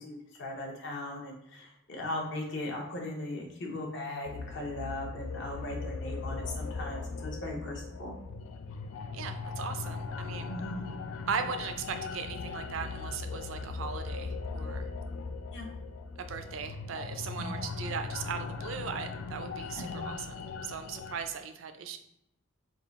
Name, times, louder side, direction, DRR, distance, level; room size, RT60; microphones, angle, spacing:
voice 1, 0.0-8.1 10.5-10.9 15.5-15.7 17.4-17.6 19.7-20.1, left 1 dB, 60° left, 0 dB, 0.9 m, -38 dB
sound 1, 4.2-21.2, left 4 dB, 85° left, 0.3 m, -39 dB
voice 2, 9.1-10.5 11.3-14.9 16.2-22.0, right 6 dB, 70° right, 8 dB, 0.4 m, -38 dB
3.8 x 2.4 x 4.0 m, 0.80 s
head